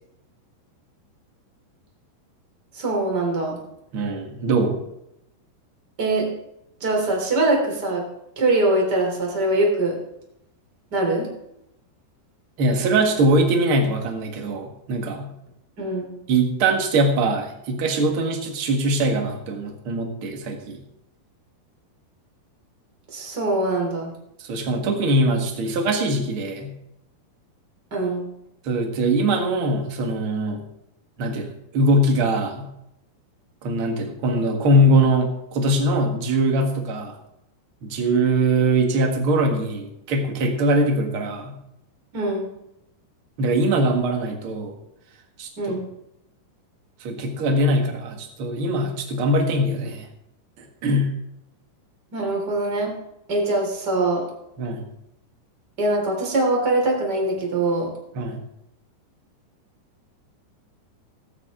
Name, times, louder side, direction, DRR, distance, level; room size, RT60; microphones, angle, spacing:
voice 1, 2.8-3.6 6.0-6.3 6.8-8.0 8.4-10.0 10.9-11.3 15.8-16.1 23.1-24.1 27.9-28.2 42.1-42.5 45.6-45.8 52.1-52.9 53.3-54.2 55.8-57.9, right 2 dB, 25° right, -1 dB, 3.5 m, -22 dB
voice 2, 3.9-4.8 12.6-15.3 16.3-20.8 24.4-26.7 28.6-30.6 31.2-32.7 33.6-37.1 37.8-41.6 43.4-44.8 45.4-45.5 47.0-50.1 50.6-51.1 54.6-54.9 58.1-58.4, right 1 dB, 50° right, 3 dB, 1.7 m, -22 dB
17.5 x 9.3 x 3.7 m, 0.82 s
omnidirectional pair, 4.9 m